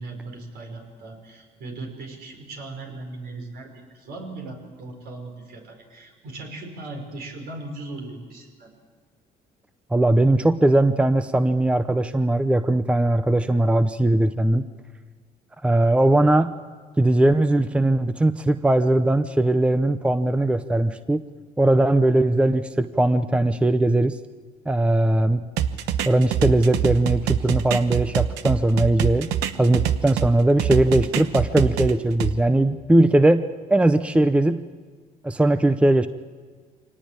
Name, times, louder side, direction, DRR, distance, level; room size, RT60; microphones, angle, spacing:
voice 1, 0.0-8.7, right 2 dB, 70° right, 3 dB, 5.5 m, -38 dB
voice 2, 9.9-14.6 15.6-16.5 17.0-21.2 21.6-24.2 24.7-25.4 26.0-34.6 35.2-36.1, right 1 dB, 5° right, 11 dB, 0.7 m, -19 dB
sound 1, 25.6-30.3 30.6-32.3, right 10 dB, 90° right, 1.1 m, -24 dB
24.5 x 18.5 x 8.8 m, 1.5 s
cardioid pair, 110°, 17 cm